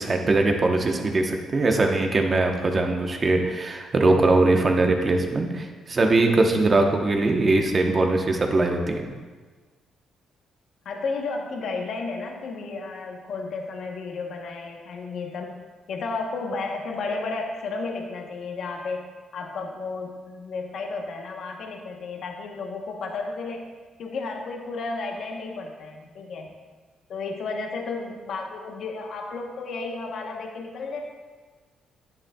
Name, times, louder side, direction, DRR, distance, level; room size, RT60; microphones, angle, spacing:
voice 1, 0.0-9.1, right 2 dB, 35° right, 3 dB, 1.0 m, -21 dB
voice 2, 10.8-15.6 15.9-19.0 19.3-23.6 24.0-26.5 27.1-31.0, left 3 dB, 65° left, 1 dB, 1.0 m, -32 dB
9.7 x 8.8 x 2.3 m, 1.4 s
cardioid pair, 90°, 0 cm